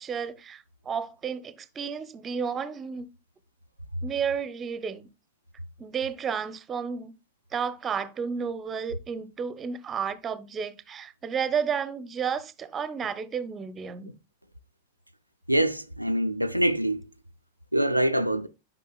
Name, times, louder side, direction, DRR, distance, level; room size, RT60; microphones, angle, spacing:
voice 1, 0.0-3.1 4.0-5.1 5.8-7.1 7.5-14.1, right 6 dB, 20° right, 0.6 m, -32 dB
voice 2, 15.5-17.0 17.7-18.5, right 1 dB, 90° right, 0.4 m, -24 dB
11.0 x 5.5 x 2.3 m
figure-of-eight pair, 90°, 0 cm